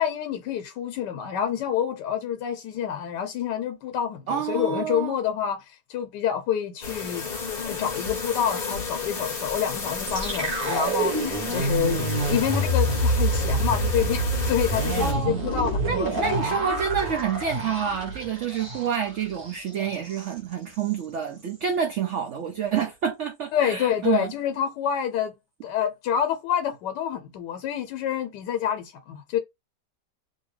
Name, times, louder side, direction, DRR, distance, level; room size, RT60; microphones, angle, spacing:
voice 1, 0.0-7.3 7.5-16.4 23.5-25.3 25.6-29.4, left 9 dB, 85° left, 1.2 m, -28 dB
voice 2, 4.3-5.2 15.0-15.3 15.8-24.3, right 7 dB, 70° right, 0.7 m, -28 dB
sound 1, 6.8-15.1, left 4 dB, 35° left, 0.7 m, -32 dB
sound 2, 10.1-19.1 19.4-19.6 19.9-20.3, right 1 dB, 35° right, 1.1 m, -27 dB
2.7 x 2.7 x 3.1 m
omnidirectional pair, 1.8 m